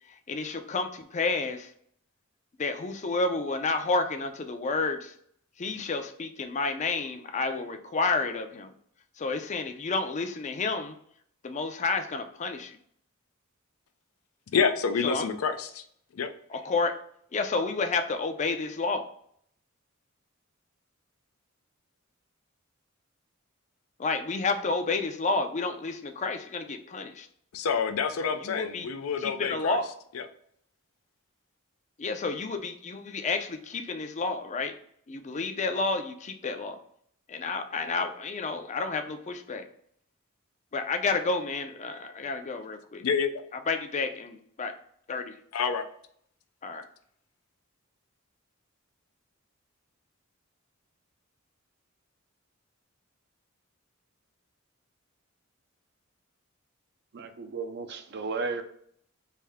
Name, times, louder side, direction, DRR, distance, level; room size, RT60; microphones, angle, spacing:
voice 1, 0.1-1.7 2.6-5.1 5.6-8.7 9.2-11.0 11.4-12.8 15.0-15.3 16.5-17.0 17.3-19.0 24.0-27.3 28.2-28.9 29.2-29.9 32.0-34.7 35.1-36.8 37.3-39.6 40.7-43.0 43.7-44.7 45.1-45.4 46.6-46.9, left 3 dB, 35° left, 7 dB, 0.4 m, -30 dB
voice 2, 14.5-15.8 16.1-16.3 27.5-29.8 30.1-30.3 43.0-43.4 45.5-45.8, left 6 dB, 90° left, 8 dB, 0.5 m, -28 dB
voice 3, 57.1-58.6, right 4 dB, 55° right, 7 dB, 0.5 m, -34 dB
3.4 x 2.7 x 3.4 m, 0.65 s
head